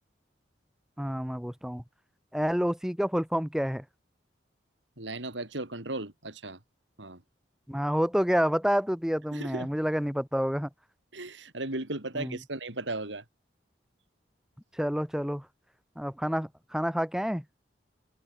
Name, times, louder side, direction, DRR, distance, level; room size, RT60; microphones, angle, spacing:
voice 1, 1.0-1.8 2.3-3.8 7.7-10.7 12.2-12.4 14.7-15.5 16.0-17.4, equal, 5° right, 1.9 m, -28 dB
voice 2, 5.0-6.6 7.0-7.2 9.3-9.8 11.1-13.2, right 2 dB, 75° right, 3.6 m, -36 dB
head